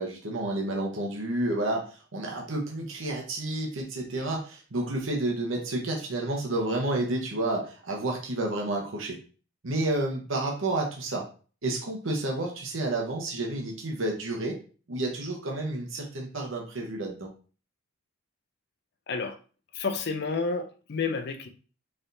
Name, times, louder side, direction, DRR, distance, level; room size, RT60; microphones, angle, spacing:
voice 1, 0.0-9.2 9.6-11.3 11.6-14.6 14.9-17.3, right 2 dB, 70° right, 0.9 m, -30 dB
voice 2, 19.1-19.4 19.7-21.5, left 4 dB, 50° left, 0.5 m, -30 dB
4.1 x 3.4 x 2.6 m
head